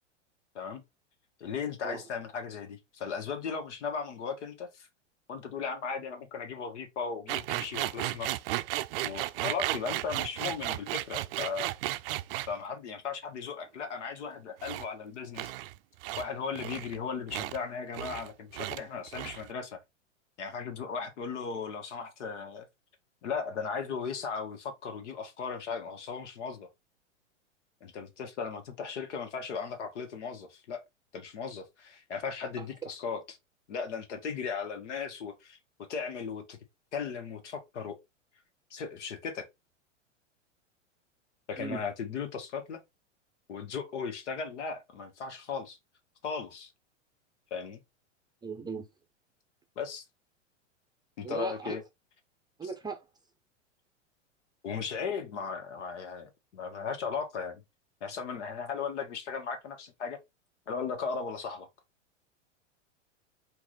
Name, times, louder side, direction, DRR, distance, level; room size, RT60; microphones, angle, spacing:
voice 1, 1.4-4.9 5.3-8.3 9.0-11.7 12.5-15.5 16.2-19.8 20.4-22.7 23.2-26.7 27.8-30.8 31.1-33.2 33.7-36.6 36.9-38.0 38.7-39.5 41.5-42.8 43.5-45.8 46.2-46.7 47.5-47.8 49.7-50.0 51.2-51.8 52.6-52.7 54.6-57.6 58.0-60.2 60.7-61.7, left 5 dB, 70° left, 1.5 m, -37 dB
sound 1, 7.3-12.5 14.6-14.9 15.4-15.8 16.0-16.3 16.6-17.0 17.3-17.6 17.9-18.3 18.5-18.8 19.1-19.5, right 16 dB, 50° right, 0.5 m, -34 dB
voice 2, 32.6-32.9 41.6-41.8 48.4-48.9 51.2-51.8 52.6-53.1, right 5 dB, 10° right, 0.6 m, -38 dB
4.5 x 2.7 x 3.9 m
hypercardioid pair, 110°, 37 cm